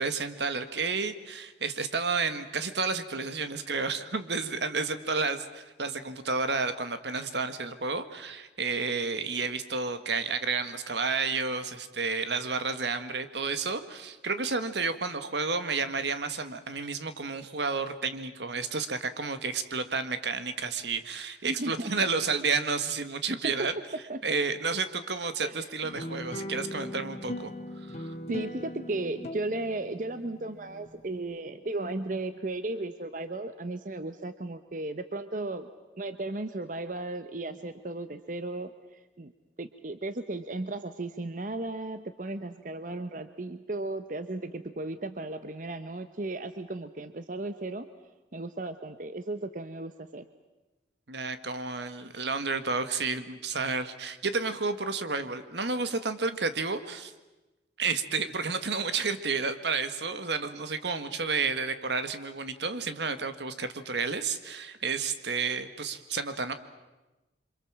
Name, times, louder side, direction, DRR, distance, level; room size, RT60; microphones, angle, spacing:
voice 1, 0.0-23.7 24.2-27.5 27.9-28.1 51.1-57.1 57.8-66.5, right 4 dB, 75° right, 10 dB, 1.7 m, -31 dB
voice 2, 21.4-21.9 23.4-23.7 24.1-24.2 25.4-25.7 28.3-35.7 36.0-39.3 39.6-47.9 48.3-50.3, right 2 dB, 45° right, 10 dB, 0.9 m, -35 dB
sound 1, 25.8-30.9, left 1 dB, 40° left, 2.1 m, -39 dB
28.0 x 25.5 x 7.4 m, 1.1 s
head